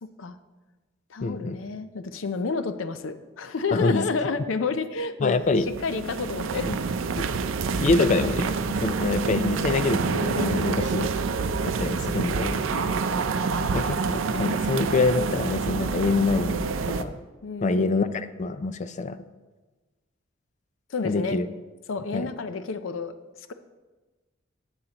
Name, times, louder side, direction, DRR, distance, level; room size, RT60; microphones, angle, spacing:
voice 1, 0.0-0.4 1.1-5.4 5.8-6.7 12.7-13.0 17.4-18.1 20.9-21.4 21.9-23.1, left 4 dB, 80° left, 11 dB, 0.6 m, -30 dB
voice 2, 1.2-1.6 3.7-4.0 5.2-5.7 6.7-6.8 7.2-7.3 7.8-11.1 11.7-12.7 13.7-16.6 16.9-17.1 17.6-19.2 21.0-21.5 22.1-22.3, left 3 dB, 40° left, 12 dB, 0.4 m, -25 dB
sound 1, 5.4-17.0, right 4 dB, 85° right, 0.5 m, -27 dB
11.5 x 8.0 x 2.9 m, 1.2 s
head